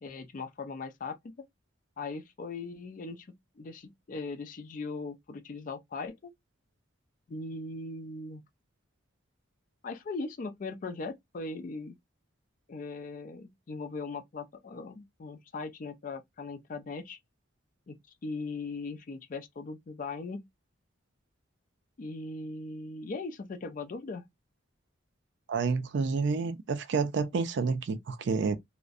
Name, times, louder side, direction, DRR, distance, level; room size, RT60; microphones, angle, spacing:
voice 1, 0.0-1.5 2.0-6.3 7.3-8.4 9.8-12.0 12.7-17.2 17.9-18.0 18.2-20.5 22.0-24.3, left 3 dB, 40° left, 0.4 m, -39 dB
voice 2, 25.5-28.6, right 4 dB, 60° right, 0.3 m, -29 dB
2.5 x 2.0 x 2.4 m
head